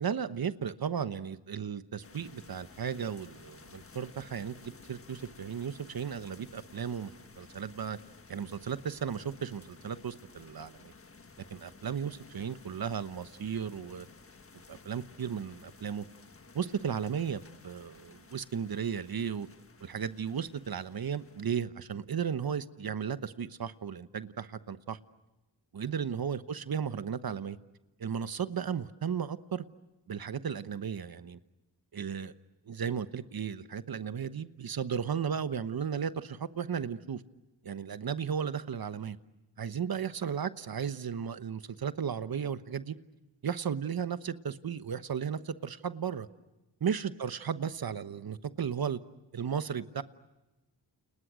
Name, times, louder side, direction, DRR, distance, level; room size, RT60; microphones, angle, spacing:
voice 1, 0.0-8.0 8.3-10.9 11.5-14.1 14.7-16.1 16.5-19.5 19.8-25.0 25.7-27.6 28.0-29.7 30.1-31.4 31.9-32.3 32.7-37.2 37.6-39.2 39.6-43.0 43.4-46.3 46.8-49.0 49.3-50.0, right 7 dB, 55° right, 12 dB, 1.1 m, -35 dB
sound 1, 2.0-21.6, left 4 dB, 30° left, 1.5 m, -55 dB
29.5 x 29.5 x 6.3 m, 1.0 s
wide cardioid pair, 95°, 43 cm